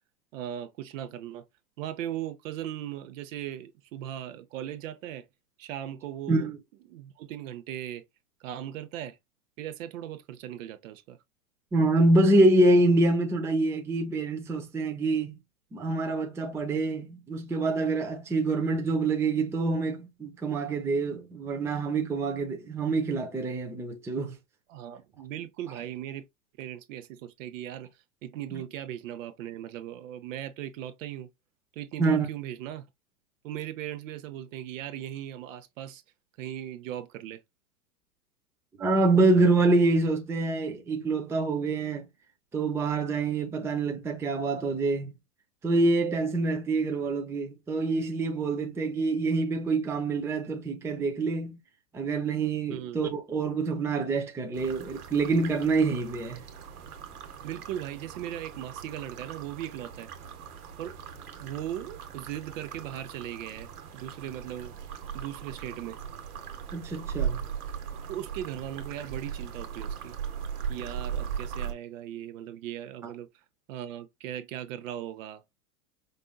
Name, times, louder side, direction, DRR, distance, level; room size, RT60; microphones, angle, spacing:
voice 1, 0.3-1.4 1.8-5.3 5.6-6.5 6.9-8.0 8.4-9.2 9.6-11.2 24.7-26.3 26.6-27.9 28.2-31.3 31.8-32.9 33.4-36.0 36.4-37.4 52.7-53.0 57.4-60.1 60.8-61.1 61.4-63.7 63.9-64.7 65.1-66.0 68.1-70.2 70.7-73.3 73.7-75.4, right 11 dB, 60° right, 0.8 m, -38 dB
voice 2, 11.7-15.4 15.7-24.4 32.0-32.3 38.8-42.0 42.5-45.1 45.6-51.6 51.9-56.4 66.7-67.4, right 2 dB, 5° right, 0.5 m, -26 dB
sound 1, 54.5-71.7, right 8 dB, 75° right, 1.2 m, -38 dB
5.2 x 2.6 x 2.2 m
hypercardioid pair, 115°, 45 cm